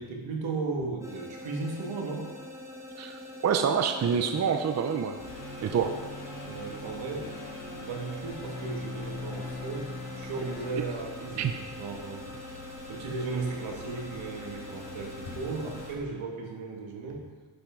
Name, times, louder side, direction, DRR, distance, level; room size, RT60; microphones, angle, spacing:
voice 1, 0.0-2.4 6.4-7.3 7.6-12.6 12.9-17.3, right 3 dB, 80° right, 0 dB, 1.9 m, -36 dB
sound 1, 1.0-15.9, left 1 dB, 5° right, 0.9 m, -44 dB
voice 2, 3.0-5.2 5.6-6.0 11.4-11.6, right 7 dB, 35° right, 6 dB, 0.5 m, -27 dB
sound 2, 5.2-16.0, left 2 dB, 45° left, 2.4 m, -47 dB
sound 3, 5.3-10.7, left 3 dB, 65° left, 1.8 m, -42 dB
11.0 x 5.7 x 5.1 m, 1.4 s
wide cardioid pair, 150°, 46 cm